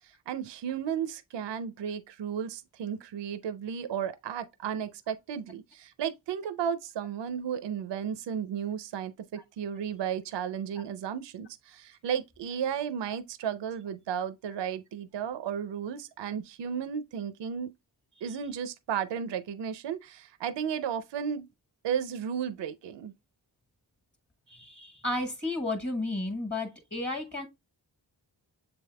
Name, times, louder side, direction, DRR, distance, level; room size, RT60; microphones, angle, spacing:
voice 1, 0.0-17.7 18.2-21.5 21.8-23.1, right 8 dB, 70° right, 0.6 m, -34 dB
voice 2, 24.5-27.5, left 2 dB, 25° left, 1.3 m, -33 dB
6.9 x 3.5 x 2.2 m
cardioid pair, 45°, 45 cm